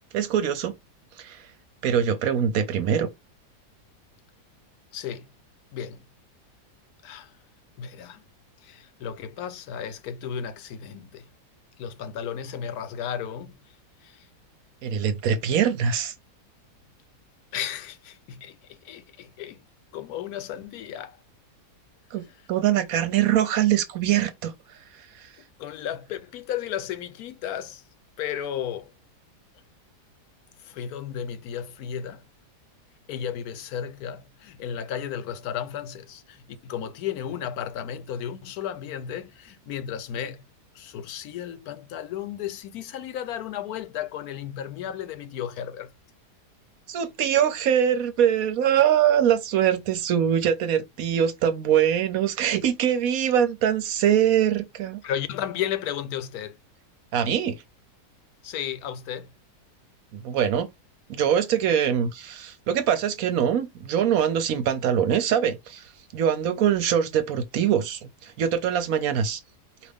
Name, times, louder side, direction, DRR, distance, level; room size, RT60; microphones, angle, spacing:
voice 1, 0.1-0.7 1.2-1.4 1.8-3.1 14.8-16.1 22.1-24.5 25.2-25.3 46.9-55.0 57.1-57.6 60.1-60.7 61.1-69.4, right 9 dB, 65° right, 1.0 m, -23 dB
voice 2, 4.9-5.3 5.7-6.0 7.0-7.3 7.8-8.2 8.6-11.3 11.8-13.6 14.0-14.3 17.5-19.6 19.9-21.2 25.6-27.8 28.2-28.9 30.6-32.2 33.1-40.4 40.7-45.9 55.0-56.6 58.4-59.3, left 9 dB, 70° left, 1.1 m, -34 dB
4.7 x 2.5 x 3.5 m
omnidirectional pair, 1.7 m